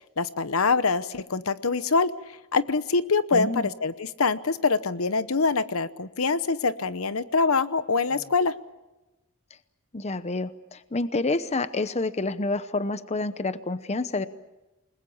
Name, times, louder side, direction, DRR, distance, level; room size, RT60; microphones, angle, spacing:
voice 1, 0.2-2.1 2.5-8.5, left 4 dB, 70° left, 14 dB, 0.9 m, -24 dB
voice 2, 3.3-3.7 9.9-14.3, left 2 dB, 30° left, 13 dB, 0.9 m, -28 dB
28.5 x 21.0 x 7.2 m, 1.0 s
head